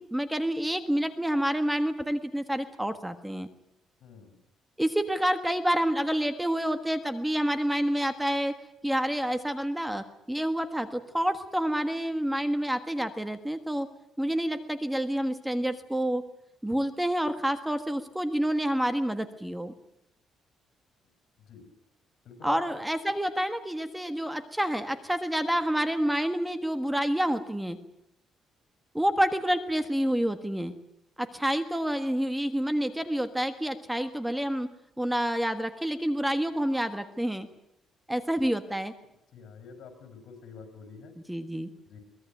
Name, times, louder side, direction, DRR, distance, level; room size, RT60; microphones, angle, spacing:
voice 1, 0.0-3.5 4.8-13.9 14.2-16.2 16.6-19.7 22.4-27.8 28.9-30.7 31.2-34.7 35.0-37.5 38.1-38.9 41.3-41.7, equal, 5° right, 9 dB, 1.5 m, -28 dB
voice 2, 4.0-4.4 21.5-21.6 22.3-22.6 39.3-41.1 41.9-42.0, left 6 dB, 70° left, 8 dB, 6.8 m, -46 dB
23.0 x 20.0 x 9.1 m, 0.80 s
cardioid pair, 135°, 0 cm